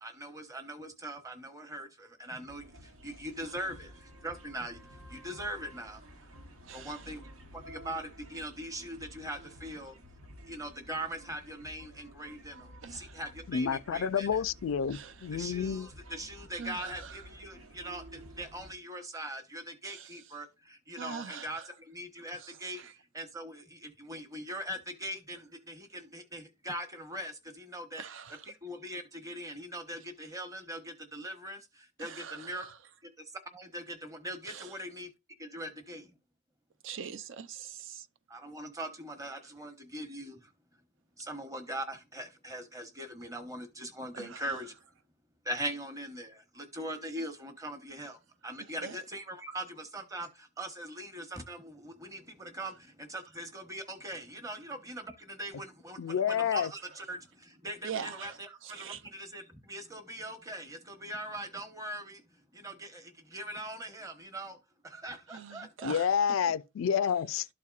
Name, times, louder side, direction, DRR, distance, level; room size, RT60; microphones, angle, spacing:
voice 1, 0.0-4.8 5.1-6.0 6.7-7.3 7.5-10.0 10.5-14.4 15.3-28.0 28.4-32.7 33.0-35.1 35.4-36.1 38.3-40.5 41.2-44.7 45.4-64.6 64.8-66.0, right 1 dB, 15° right, 1.0 m, -41 dB
sound 1, 2.5-18.7, equal, 80° right, 1.1 m, -52 dB
voice 2, 6.7-7.0 12.8-13.2 14.9-15.3 16.6-17.2 19.9-20.1 21.0-21.7 22.4-22.9 28.0-28.5 32.0-32.7 34.5-34.7 36.8-38.1 44.1-44.6 48.8-49.0 57.8-59.0 65.3-66.1, right 7 dB, 60° right, 0.5 m, -43 dB
voice 3, 13.5-15.9 56.0-56.7 65.8-67.5, left 7 dB, 70° left, 0.3 m, -29 dB
12.5 x 4.2 x 2.4 m
head